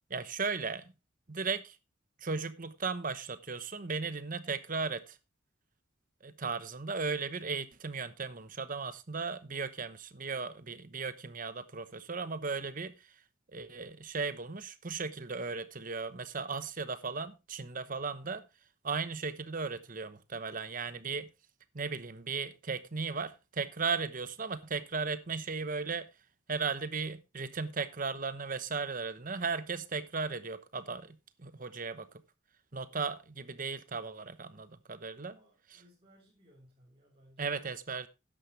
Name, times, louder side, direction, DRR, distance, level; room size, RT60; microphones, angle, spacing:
voice 1, 0.1-0.9 1.3-1.8 2.2-5.2 6.2-13.2 13.5-18.4 18.8-21.3 21.7-26.1 26.5-32.1 32.7-35.3 37.4-38.1, right 4 dB, 45° right, 13 dB, 1.0 m, -36 dB
voice 2, 35.1-37.6, equal, 30° right, -4 dB, 3.9 m, -63 dB
13.0 x 10.0 x 3.2 m, 0.26 s
head